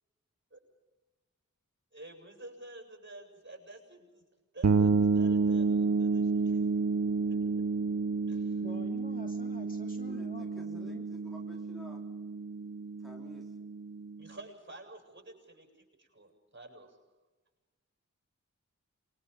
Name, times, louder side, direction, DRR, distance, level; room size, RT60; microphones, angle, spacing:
voice 1, 1.9-4.2 4.5-7.7 8.3-8.6 14.2-17.0, right 2 dB, 35° right, 4 dB, 7.9 m, -50 dB
sound 1, 4.6-14.2, right 4 dB, 55° right, 0.9 m, -30 dB
voice 2, 8.6-11.0, left 2 dB, 25° left, 2 dB, 2.9 m, -47 dB
voice 3, 10.0-12.0 13.0-13.5, left 1 dB, ahead, -2 dB, 4.2 m, -52 dB
28.0 x 22.5 x 5.4 m, 1.2 s
wide cardioid pair, 45°, 32 cm